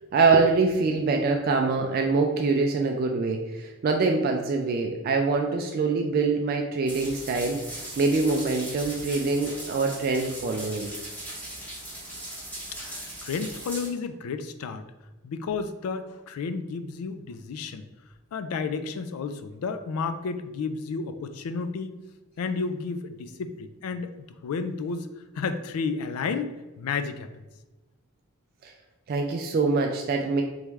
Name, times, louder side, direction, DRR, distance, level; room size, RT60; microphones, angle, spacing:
voice 1, 0.0-10.9 28.6-28.7 29.1-30.4, right 4 dB, 45° right, 2 dB, 0.3 m, -24 dB
sound 1, 6.9-13.9, right 1 dB, 5° left, 1.0 m, -39 dB
voice 2, 12.7-14.9 15.2-17.9 18.3-22.0 22.4-25.1 25.4-26.5 26.8-27.3, left 5 dB, 85° left, 10 dB, 0.4 m, -32 dB
3.5 x 3.1 x 3.3 m, 1.1 s
head